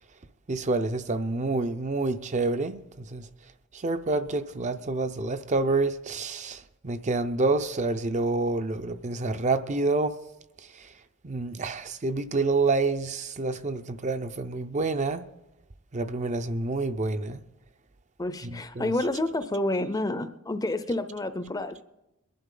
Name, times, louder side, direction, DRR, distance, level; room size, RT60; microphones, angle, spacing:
voice 1, 0.5-2.8 3.1-3.2 3.8-6.6 6.8-10.1 11.2-15.2 15.9-17.4 18.8-18.9, right 3 dB, 35° right, 0.6 m, -27 dB
voice 2, 18.2-21.8, left 1 dB, 15° left, 0.6 m, -29 dB
21.5 x 11.5 x 3.9 m
head